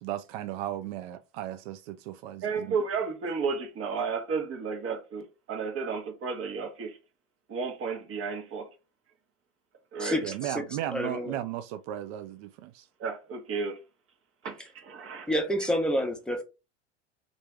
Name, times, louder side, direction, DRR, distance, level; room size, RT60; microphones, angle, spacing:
voice 1, 0.0-2.8 10.2-12.9, right 12 dB, 60° right, 0.5 m, -36 dB
voice 2, 2.4-6.9 7.5-8.7 9.9-10.2 13.0-13.8 14.4-15.3, right 5 dB, 40° right, 1.1 m, -32 dB
voice 3, 10.0-10.6 10.9-11.3 15.3-16.4, equal, ahead, 0.8 m, -28 dB
3.2 x 2.6 x 3.2 m
hypercardioid pair, 95°, 35 cm